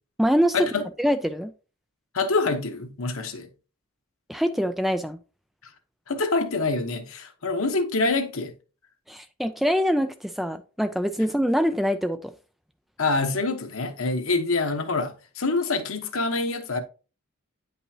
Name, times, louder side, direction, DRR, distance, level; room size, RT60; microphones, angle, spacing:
voice 1, 0.2-0.7 1.0-1.5 4.3-5.2 9.1-12.3, equal, ahead, 0.3 m, -24 dB
voice 2, 2.1-3.5 6.1-8.5 13.0-16.8, left 3 dB, 65° left, 1.2 m, -26 dB
9.7 x 5.4 x 2.8 m
head